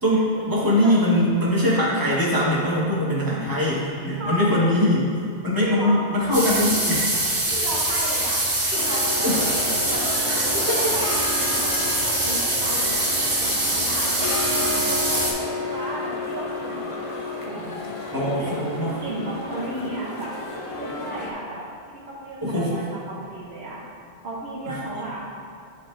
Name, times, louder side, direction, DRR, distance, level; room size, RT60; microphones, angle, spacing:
voice 1, 0.0-5.0 5.4-7.0 9.2-9.5 10.3-10.8 18.1-19.0 22.4-22.8 24.6-24.9, left 1 dB, 20° right, -7 dB, 1.4 m, -22 dB
voice 2, 4.2-4.7 5.6-6.0 7.5-8.4 8.7-12.9 13.4-17.1 17.4-18.5 19.0-20.3 20.8-21.6 21.9-23.8 24.2-25.2, right 1 dB, 70° right, -5 dB, 1.1 m, -34 dB
sound 1, 6.3-15.3, right 1 dB, 45° right, 1.4 m, -24 dB
sound 2, 8.7-21.3, left 2 dB, 35° left, 0.6 m, -32 dB
9.6 x 4.3 x 2.5 m, 2.4 s
omnidirectional pair, 1.1 m